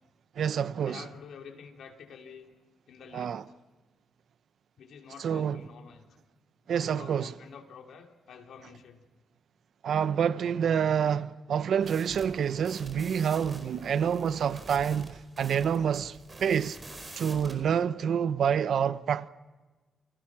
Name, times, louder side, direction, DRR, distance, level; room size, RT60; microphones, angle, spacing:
voice 1, 0.4-1.0 3.1-3.4 5.2-5.6 6.7-7.3 9.8-16.8 17.2-19.3, right 8 dB, 65° right, 0.8 m, -27 dB
voice 2, 0.9-2.5 2.9-3.4 4.8-6.1 6.7-9.0, left 6 dB, 75° left, 2.9 m, -48 dB
sound 1, 11.8-17.6, right 2 dB, 20° right, 4.8 m, -47 dB
29.0 x 24.5 x 6.1 m
wide cardioid pair, 150°, 0 cm